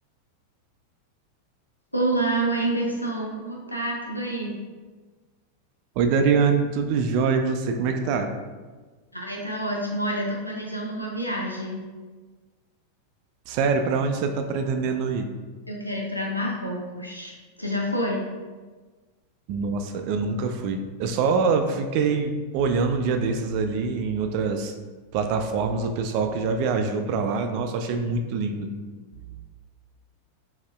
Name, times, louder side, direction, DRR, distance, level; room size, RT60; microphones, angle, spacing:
voice 1, 1.9-4.5 9.1-11.9 15.7-17.3 17.6-18.2, right 1 dB, 90° left, -2 dB, 0.5 m, -28 dB
voice 2, 6.0-8.3 13.5-15.3 19.5-24.7 25.1-28.7, right 5 dB, 45° right, 6 dB, 0.3 m, -24 dB
4.3 x 3.9 x 2.3 m, 1.4 s
figure-of-eight pair, 90°, 0 cm